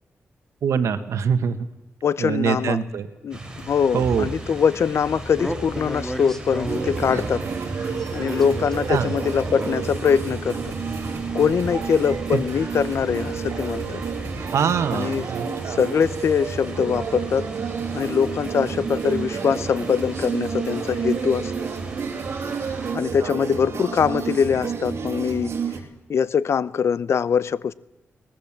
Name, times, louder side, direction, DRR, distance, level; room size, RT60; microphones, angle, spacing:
voice 1, 0.6-1.7 2.2-3.1 3.9-4.3 8.9-9.1 12.3-12.4 14.5-15.8 23.2-23.3, right 7 dB, 85° right, 1.5 m, -23 dB
voice 2, 2.0-2.8 3.2-7.4 7.8-10.7 11.3-14.0 14.9-17.5 17.9-21.5 22.9-25.5 26.1-27.7, left 7 dB, 65° left, 0.7 m, -23 dB
sound 1, 3.3-23.0, right 2 dB, 15° right, 4.7 m, -39 dB
sound 2, 4.0-14.5, equal, 10° left, 2.9 m, -35 dB
sound 3, 6.7-25.8, right 6 dB, 60° right, 3.2 m, -30 dB
23.0 x 19.5 x 7.4 m
cardioid pair, 90°, 5 cm